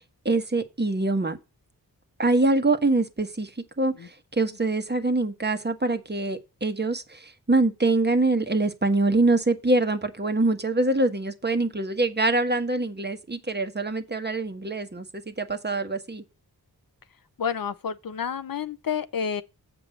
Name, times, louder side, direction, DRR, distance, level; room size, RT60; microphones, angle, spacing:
voice 1, 0.2-1.4 2.2-3.5 3.8-16.2, right 2 dB, 25° right, 1.4 m, -24 dB
voice 2, 17.4-19.4, left 7 dB, 60° left, 0.7 m, -29 dB
7.5 x 5.1 x 7.1 m
cardioid pair, 60°, 39 cm